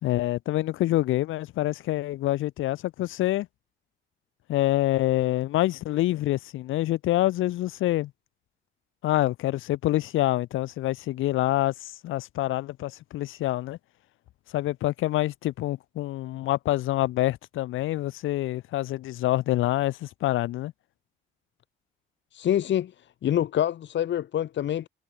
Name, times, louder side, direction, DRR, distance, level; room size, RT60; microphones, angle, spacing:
voice 1, 0.0-3.5 4.5-8.1 9.0-13.8 14.5-20.7, left 15 dB, 90° left, 5.0 m, -26 dB
voice 2, 22.3-22.9 23.2-24.9, left 11 dB, 70° left, 2.1 m, -26 dB
cardioid pair, 90°, 20 cm